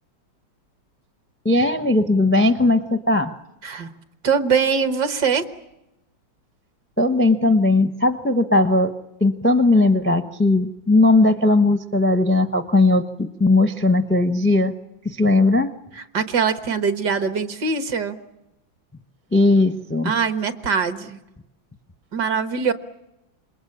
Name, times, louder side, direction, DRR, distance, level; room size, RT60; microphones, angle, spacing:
voice 1, 1.4-3.3 7.0-8.9 9.2-14.7 15.0-15.7 19.3-20.1, left 2 dB, 10° left, 10 dB, 0.6 m, -18 dB
voice 2, 4.2-5.4 16.0-18.2 20.0-21.2 22.1-22.7, right 6 dB, 60° right, 10 dB, 2.0 m, -22 dB
27.0 x 22.0 x 8.6 m, 0.90 s
omnidirectional pair, 2.1 m